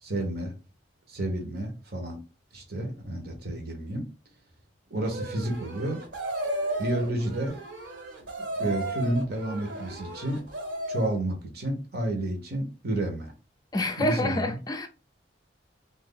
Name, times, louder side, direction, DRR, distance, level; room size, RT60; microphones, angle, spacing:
voice 1, 0.0-0.5 1.1-2.2 2.5-4.1 4.9-6.0 6.8-7.6 8.4-10.4 10.9-13.3 14.0-14.6, right 1 dB, 60° right, 1.1 m, -30 dB
sound 1, 5.0-11.2, right 1 dB, 75° right, 1.7 m, -34 dB
voice 2, 13.7-14.9, left 1 dB, 20° left, 0.4 m, -27 dB
2.9 x 2.6 x 3.9 m
head